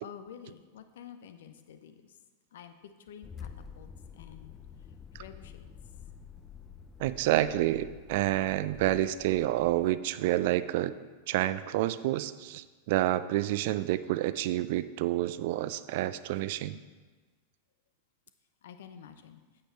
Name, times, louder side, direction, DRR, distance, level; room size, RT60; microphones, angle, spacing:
voice 1, 0.0-2.2 2.5-3.5 3.8-4.5 4.8-5.7 16.7-17.0 18.6-19.4, left 8 dB, 60° left, 9 dB, 0.7 m, -50 dB
sound 1, 3.2-9.9, left 7 dB, 20° left, 0.6 m, -48 dB
voice 2, 7.0-10.9 11.3-16.7, right 14 dB, 50° right, 14 dB, 0.4 m, -29 dB
8.9 x 8.4 x 4.4 m, 1.3 s
figure-of-eight pair, 90°, 0 cm